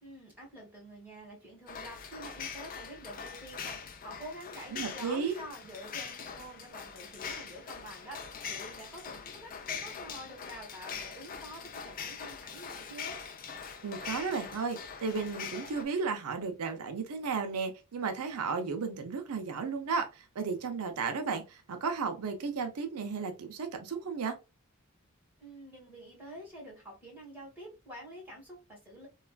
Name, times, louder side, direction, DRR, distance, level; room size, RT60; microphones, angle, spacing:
voice 1, 0.0-13.2 25.4-29.1, equal, 10° right, 1.5 m, -47 dB
sound 1, 1.7-15.8, left 6 dB, 40° left, 0.4 m, -42 dB
voice 2, 4.7-5.4 13.8-24.4, right 5 dB, 90° right, 0.5 m, -34 dB
3.1 x 2.3 x 2.2 m
head